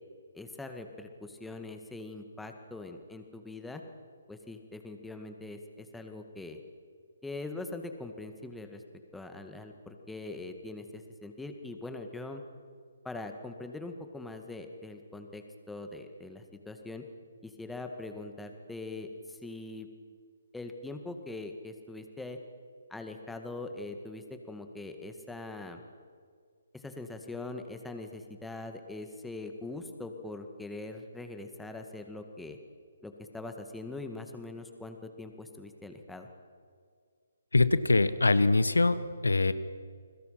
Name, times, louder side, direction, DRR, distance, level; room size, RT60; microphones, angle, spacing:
voice 1, 0.3-3.8 4.3-6.6 7.2-8.8 9.1-12.4 13.0-17.0 17.4-19.9 20.5-22.4 22.9-25.8 26.7-32.6 33.0-36.3, left 2 dB, 5° left, 5 dB, 2.1 m, -42 dB
voice 2, 37.5-39.0 39.2-39.5, left 3 dB, 85° left, 14 dB, 1.3 m, -23 dB
30.0 x 21.0 x 5.9 m, 2.1 s
figure-of-eight pair, 140°, 0 cm